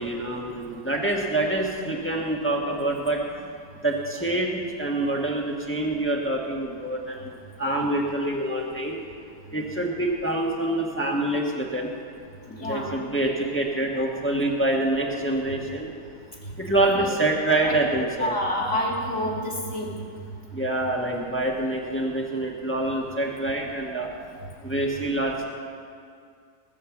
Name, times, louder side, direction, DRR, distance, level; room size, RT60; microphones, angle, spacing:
voice 1, 0.0-3.2 3.8-7.3 7.6-9.0 9.5-11.9 12.6-15.9 16.6-18.3 20.5-24.1 24.6-25.4, right 1 dB, 10° left, -1 dB, 1.2 m, -26 dB
voice 2, 12.5-13.0 16.9-17.1 17.6-17.8 18.2-19.9, left 1 dB, 45° left, -2 dB, 2.7 m, -28 dB
20.0 x 7.5 x 7.3 m, 2.3 s
omnidirectional pair, 1.8 m